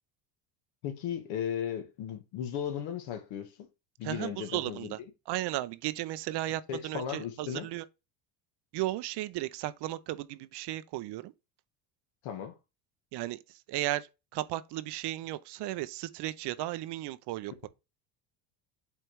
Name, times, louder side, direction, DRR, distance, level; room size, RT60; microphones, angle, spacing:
voice 1, 0.8-3.5 4.0-4.9 6.7-7.7 12.2-12.6, left 9 dB, 70° left, 1.8 m, -36 dB
voice 2, 4.0-5.0 5.3-7.8 8.7-11.3 13.1-13.4 13.7-17.7, right 15 dB, 55° right, 0.7 m, -35 dB
8.0 x 3.4 x 4.6 m
supercardioid pair, 100°, 49 cm